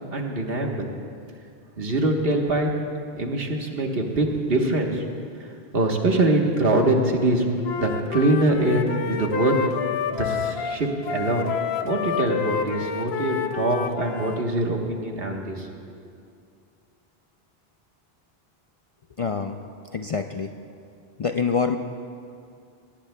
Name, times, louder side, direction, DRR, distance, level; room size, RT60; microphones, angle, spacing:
voice 1, 0.1-0.9 1.8-2.7 3.1-5.0 5.4-7.5 7.7-9.6 10.1-11.5 11.8-15.7, right 2 dB, 65° right, 1 dB, 1.5 m, -23 dB
Wind instrument woodwind instrument, 7.6-14.4, left 7 dB, 80° left, 0.9 m, -29 dB
voice 2, 19.2-19.6 19.9-20.5 21.2-21.8, left 5 dB, 50° left, 5 dB, 0.4 m, -25 dB
22.0 x 18.0 x 2.2 m, 2.4 s
omnidirectional pair, 1.0 m